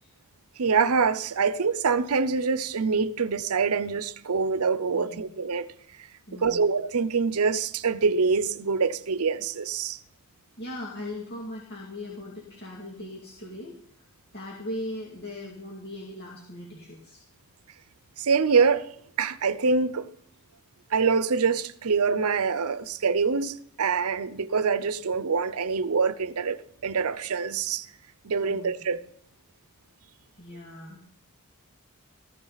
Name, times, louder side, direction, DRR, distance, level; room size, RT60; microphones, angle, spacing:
voice 1, 0.6-5.7 6.3-10.0 18.2-20.0 20.9-26.6 26.8-27.9 28.2-29.0, right 5 dB, 75° right, 0.7 m, -25 dB
voice 2, 6.3-6.6 10.6-14.1 14.3-17.2 28.5-29.0 30.4-31.0, left 1 dB, 50° left, 2.4 m, -39 dB
14.5 x 13.0 x 4.0 m
head